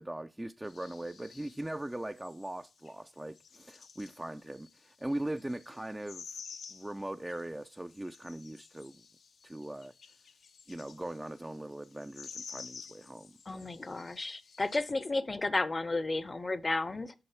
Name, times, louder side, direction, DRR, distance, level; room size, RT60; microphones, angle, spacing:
voice 1, 0.0-6.4 6.7-9.0 9.4-9.9 10.7-13.9, right 1 dB, 15° right, 0.5 m, -40 dB
sound 1, 0.7-14.8, left 6 dB, 75° left, 0.8 m, -52 dB
voice 2, 13.5-17.1, left 2 dB, 35° left, 0.8 m, -33 dB
7.8 x 5.3 x 5.7 m
supercardioid pair, 45°, 0 cm